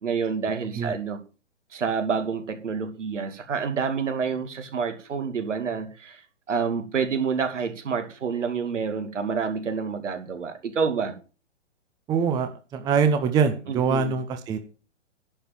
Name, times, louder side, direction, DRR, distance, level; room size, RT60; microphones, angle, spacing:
voice 1, 0.0-1.2 1.7-6.2 6.5-11.1 13.9-14.2, right 6 dB, 75° right, 2.6 m, -28 dB
voice 2, 12.1-14.6, right 6 dB, 10° right, 0.7 m, -24 dB
11.0 x 5.3 x 7.4 m
hypercardioid pair, 135°, 37 cm